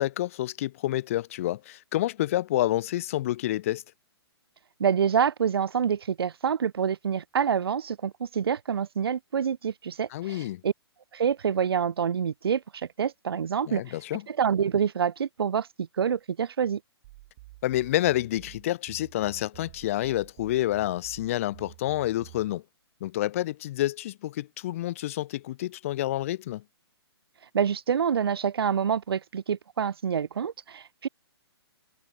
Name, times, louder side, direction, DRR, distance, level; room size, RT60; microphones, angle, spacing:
voice 1, 0.0-3.8 10.1-10.6 13.6-14.2 17.6-22.6 23.0-26.6, left 14 dB, 30° left, 0.4 m, -28 dB
voice 2, 4.8-10.7 11.1-13.8 14.3-16.8 27.5-31.1, right 7 dB, 65° right, 0.4 m, -27 dB
sound 1, 17.0-22.5, right 20 dB, 35° right, 6.9 m, -49 dB
figure-of-eight pair, 125°, 14 cm